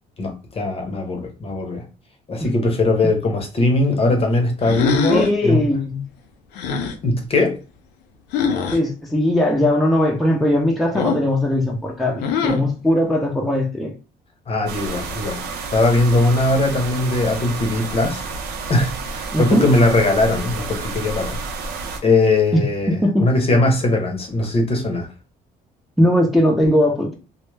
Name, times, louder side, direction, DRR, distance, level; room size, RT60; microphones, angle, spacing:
voice 1, 0.2-1.8 2.3-5.7 7.0-7.6 14.5-15.4 15.7-18.2 18.7-21.4 22.0-25.1, left 2 dB, 35° left, 0.7 m, -20 dB
sound 1, 4.6-5.4 6.5-7.0 8.3-8.8 10.9-11.3 12.2-12.7, left 6 dB, 80° left, 0.5 m, -22 dB
voice 2, 5.1-6.0 8.7-13.9 19.3-19.7 22.5-23.3 26.0-27.1, left 1 dB, ahead, 0.5 m, -19 dB
sound 2, 14.7-22.0, right 4 dB, 80° right, 0.6 m, -30 dB
2.1 x 2.0 x 3.2 m
cardioid pair, 110°, 17 cm